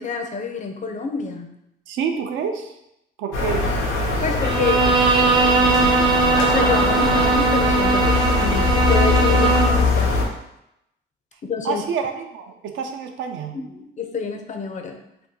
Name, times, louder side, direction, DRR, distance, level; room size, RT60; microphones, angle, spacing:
voice 1, 0.0-1.5 4.2-4.9 6.3-10.2 11.4-11.8 13.5-15.0, left 4 dB, 40° left, 5 dB, 0.4 m, -27 dB
voice 2, 1.9-2.7 3.2-3.8 11.6-13.6, right 6 dB, 75° right, 5 dB, 0.4 m, -27 dB
sound 1, 3.3-10.2, left 3 dB, 90° left, 0.7 m, -21 dB
Bowed string instrument, 4.4-9.9, right 4 dB, 20° right, 0.5 m, -19 dB
2.7 x 2.2 x 3.7 m, 0.82 s
cardioid pair, 90°, 20 cm